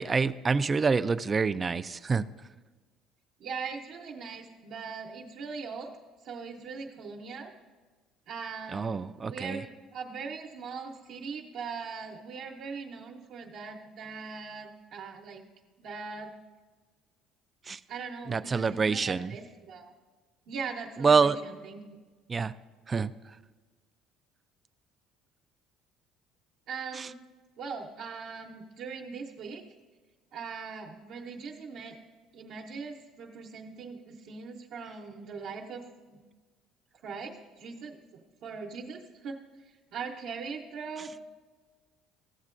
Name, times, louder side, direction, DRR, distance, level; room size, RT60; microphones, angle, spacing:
voice 1, 0.0-2.3 8.7-9.6 17.7-17.8 18.3-19.4 21.0-21.4 22.3-22.5 22.9-23.1 27.0-27.1, right 5 dB, 25° right, 13 dB, 0.3 m, -26 dB
voice 2, 3.4-6.0 6.2-7.5 8.3-15.4 15.8-16.3 17.9-19.9 20.5-22.0 26.7-27.2 27.6-29.6 30.3-32.0 32.3-36.2 37.0-39.4 39.9-41.3, right 5 dB, 65° right, 0 dB, 0.8 m, -40 dB
14.5 x 7.3 x 2.5 m, 1.3 s
cardioid pair, 110°, 0 cm